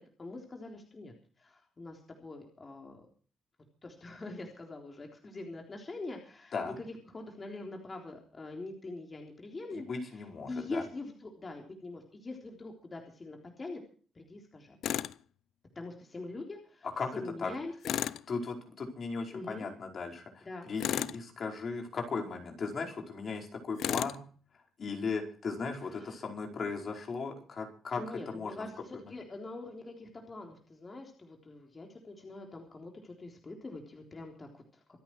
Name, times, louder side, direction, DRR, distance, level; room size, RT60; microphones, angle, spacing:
voice 1, 0.0-3.1 3.8-9.9 10.5-13.8 14.1-14.8 15.8-16.9 17.1-17.9 19.3-19.7 20.5-20.7 25.9-26.2 28.0-34.8, left 2 dB, 30° left, 1 dB, 3.8 m, -44 dB
voice 2, 9.7-10.8 17.0-17.1 17.4-17.5 18.3-24.2 24.8-28.6, left 4 dB, 50° left, 2 dB, 4.9 m, -37 dB
Tools, 14.8-15.2 17.8-18.3 20.8-21.2 23.8-24.2, left 11 dB, 75° left, 0.6 m, -33 dB
26.0 x 9.1 x 4.7 m, 0.43 s
cardioid pair, 90°, 0 cm